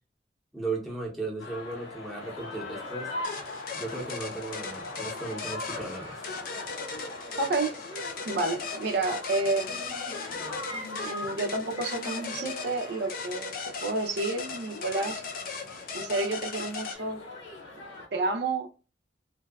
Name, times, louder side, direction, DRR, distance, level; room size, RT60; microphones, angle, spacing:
voice 1, 0.5-3.1 3.7-6.2, right 3 dB, ahead, 0.7 m, -36 dB
sound 1, 1.4-18.1, left 2 dB, 85° left, 0.7 m, -41 dB
sound 2, 3.2-17.0, left 5 dB, 50° left, 0.4 m, -38 dB
voice 2, 7.4-7.8 8.3-9.8 11.0-13.5 13.8-15.2 15.9-17.2 18.1-18.7, right 3 dB, 65° right, 0.4 m, -30 dB
2.6 x 2.2 x 2.2 m
head